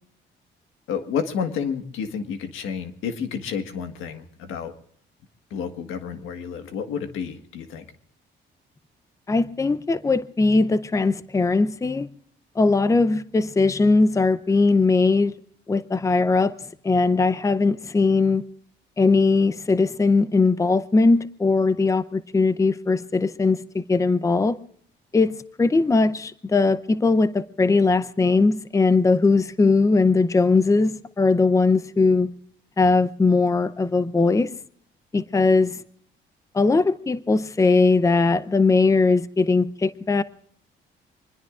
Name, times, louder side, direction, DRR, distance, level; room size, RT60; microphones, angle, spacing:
voice 1, 0.9-4.7 5.5-7.9, left 7 dB, 90° left, 1.6 m, -30 dB
voice 2, 9.3-12.1 12.6-15.3 15.7-16.5 16.8-18.4 19.0-24.6 25.1-32.3 32.8-34.5 35.1-35.8 36.5-40.2, left 3 dB, 15° left, 0.6 m, -20 dB
25.0 x 20.5 x 2.5 m
cardioid pair, 90°, 20 cm